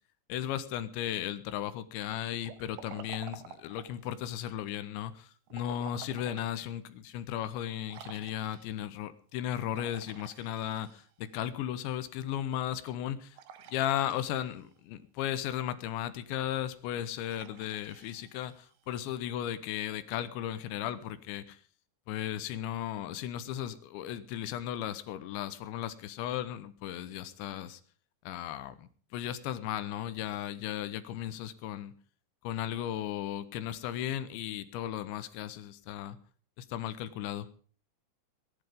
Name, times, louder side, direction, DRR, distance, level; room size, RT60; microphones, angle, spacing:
voice 1, 0.3-13.4 13.7-21.6 22.1-27.8 28.3-31.9 32.4-36.2 36.6-37.5, left 11 dB, 80° left, 13 dB, 3.2 m, -36 dB
Liquid, 2.4-4.0 5.5-6.6 7.0-7.1 7.9-8.9 9.7-11.3 13.3-14.7 17.2-18.9, right 9 dB, 75° right, 2.0 m, -50 dB
18.5 x 11.0 x 5.3 m, 0.43 s
omnidirectional pair, 5.3 m